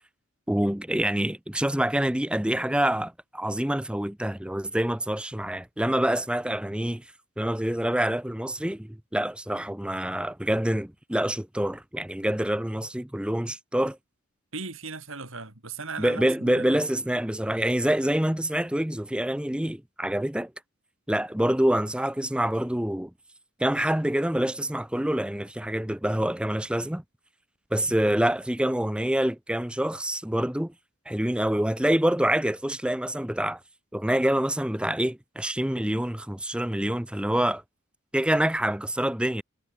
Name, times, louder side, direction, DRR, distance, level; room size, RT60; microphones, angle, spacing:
voice 1, 0.5-7.0 7.4-14.0 16.0-20.5 21.1-23.1 23.6-27.0 27.7-30.7 31.1-33.6 33.9-37.6 38.1-39.4, right 1 dB, 5° right, 0.6 m, -26 dB
voice 2, 14.5-16.8, right 4 dB, 70° right, 3.9 m, -37 dB
head